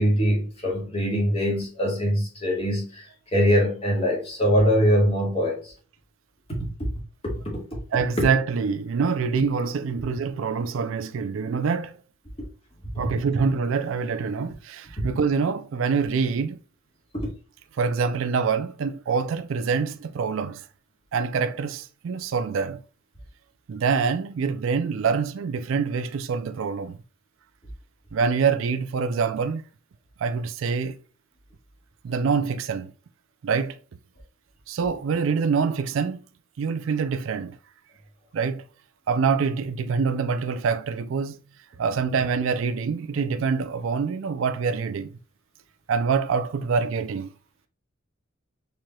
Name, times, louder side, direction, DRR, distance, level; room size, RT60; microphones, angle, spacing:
voice 1, 0.0-5.7 6.5-6.7 7.2-7.6 15.0-15.1 17.1-17.3, equal, 30° left, 1.7 m, -23 dB
voice 2, 7.9-12.0 13.0-16.6 17.8-20.6 21.1-22.8 23.7-27.0 28.1-29.6 30.2-31.0 32.0-32.9 33.4-33.8 34.7-36.2 36.6-37.6 38.3-38.6 39.1-41.4 41.8-45.1 45.9-47.3, right 5 dB, 70° right, 0.4 m, -25 dB
4.7 x 4.3 x 2.3 m
head